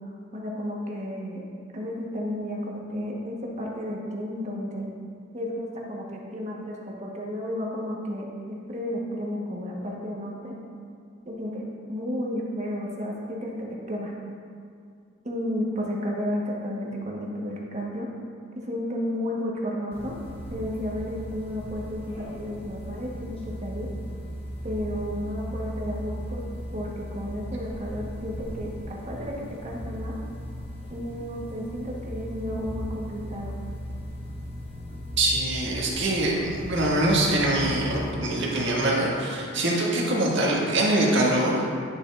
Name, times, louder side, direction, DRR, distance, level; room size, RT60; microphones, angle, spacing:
voice 1, 0.3-1.4 1.7-4.9 5.3-10.5 11.2-14.1 15.2-18.1 18.5-20.1 20.5-23.9 24.6-26.4 26.7-30.2 30.9-33.5, equal, 35° right, -3 dB, 1.2 m, -32 dB
sound 1, 19.9-38.1, equal, 30° left, 1.1 m, -37 dB
voice 2, 35.2-41.7, right 1 dB, 60° right, -5 dB, 1.7 m, -24 dB
11.0 x 6.9 x 2.5 m, 2.3 s
head